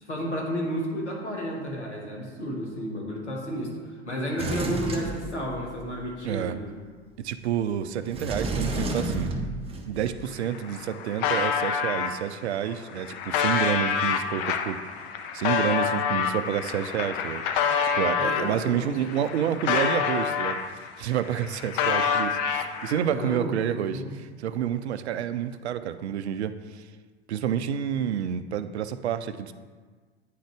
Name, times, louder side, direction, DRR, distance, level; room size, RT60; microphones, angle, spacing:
voice 1, 0.0-6.7 18.2-19.2 23.0-24.1, equal, 85° left, -2 dB, 1.5 m, -32 dB
Sliding door, 4.4-5.9 8.1-10.1, right 2 dB, 15° right, 0.7 m, -30 dB
voice 2, 6.2-6.6 7.2-9.3 9.9-14.8 15.3-17.4 17.9-26.8 27.3-29.5, right 9 dB, 70° right, 11 dB, 0.5 m, -29 dB
sound 1, 10.2-10.3 10.5-12.1 12.7-18.5 19.0-20.9 21.2-23.0, left 7 dB, 50° left, 0.7 m, -27 dB
9.2 x 3.8 x 3.4 m, 1.5 s
figure-of-eight pair, 85°, 34 cm